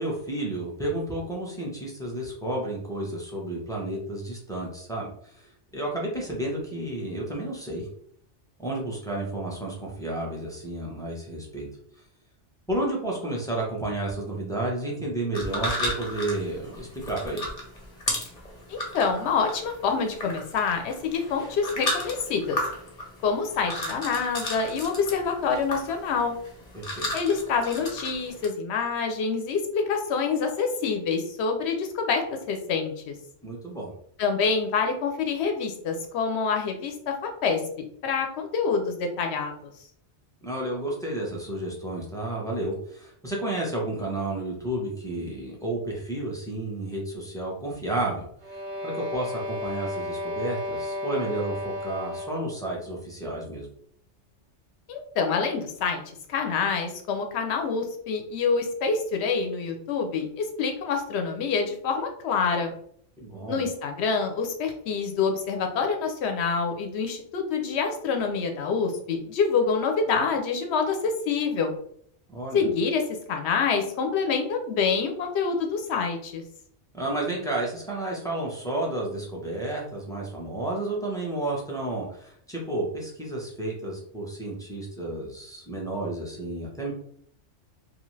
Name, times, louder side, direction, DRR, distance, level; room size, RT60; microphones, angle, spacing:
voice 1, 0.0-5.5 5.7-7.9 8.6-11.7 12.7-17.5 26.7-27.1 33.4-33.9 40.4-48.3 48.8-53.7 63.2-63.6 72.3-72.6 76.9-86.9, right 1 dB, 5° left, -3 dB, 0.5 m, -31 dB
sound 1, 15.3-28.5, left 1 dB, 40° left, 0.8 m, -34 dB
voice 2, 18.7-22.6 23.2-26.3 27.1-33.1 34.2-37.6 38.0-39.5 54.9-56.0 56.3-62.7 63.5-71.7 72.5-73.0 73.3-76.4, left 5 dB, 70° left, 5 dB, 0.9 m, -26 dB
sound 2, 48.4-52.6, left 1 dB, 45° right, 0.6 m, -33 dB
2.6 x 2.5 x 3.1 m, 0.65 s
omnidirectional pair, 1.2 m